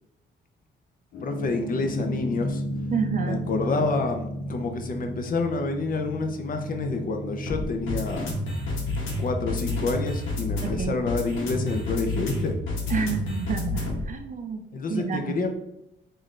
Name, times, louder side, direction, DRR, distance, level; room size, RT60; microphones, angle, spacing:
sound 1, 1.1-14.2, left 1 dB, 80° left, 1.0 m, -31 dB
voice 1, 1.2-2.6 3.2-8.3 9.2-12.6 14.7-15.6, left 3 dB, 45° left, 5 dB, 0.6 m, -28 dB
voice 2, 2.9-3.4 10.6-11.0 12.9-14.6 14.9-15.4, right 6 dB, 40° right, 7 dB, 0.5 m, -29 dB
3.8 x 2.6 x 3.1 m, 0.82 s
cardioid pair, 90°, 20 cm